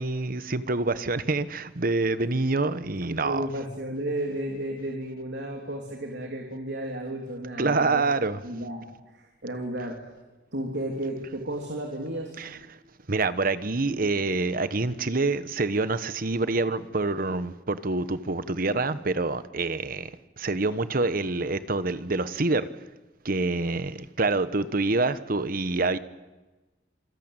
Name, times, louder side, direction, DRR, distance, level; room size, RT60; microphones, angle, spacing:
voice 1, 0.0-3.5 7.6-8.4 12.4-12.6 13.1-22.7 23.2-26.0, right 3 dB, 55° right, 1.1 m, -26 dB
voice 2, 3.1-8.0 8.4-10.0 10.5-12.3, right 1 dB, 75° right, 3.3 m, -33 dB
27.0 x 20.0 x 9.0 m
head